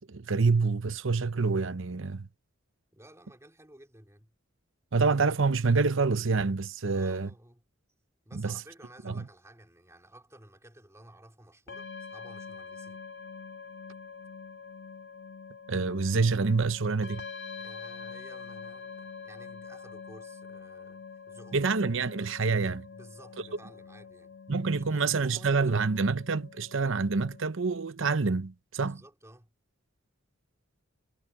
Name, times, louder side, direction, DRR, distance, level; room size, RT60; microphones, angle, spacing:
voice 1, 0.1-2.3 4.9-7.3 8.3-8.6 9.0-9.2 15.7-17.3 21.5-22.9 24.5-29.0, right 4 dB, 70° right, 0.8 m, -27 dB
voice 2, 2.9-4.3 6.8-7.6 8.3-13.1 17.5-21.9 22.9-24.4 24.7-26.1 28.8-29.5, right 1 dB, 15° right, 3.6 m, -54 dB
sound 1, 11.7-27.5, left 5 dB, 65° left, 1.9 m, -45 dB
head